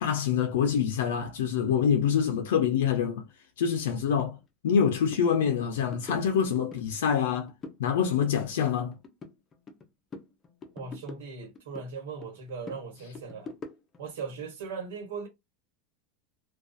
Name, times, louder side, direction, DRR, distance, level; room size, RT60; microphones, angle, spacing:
voice 1, 0.0-3.2 3.6-4.4 4.6-7.5 7.8-9.0, left 7 dB, 90° left, 0.4 m, -26 dB
sound 1, 4.2-4.3 4.7-4.8 5.1-5.3 5.6-6.8 7.2-7.8 8.1-9.8 10.1-11.9 12.2-14.1, left 4 dB, 20° left, 0.5 m, -45 dB
voice 2, 10.7-13.5 14.0-15.3, right 5 dB, 85° right, 1.1 m, -38 dB
2.3 x 2.2 x 2.5 m
supercardioid pair, 145°, 0 cm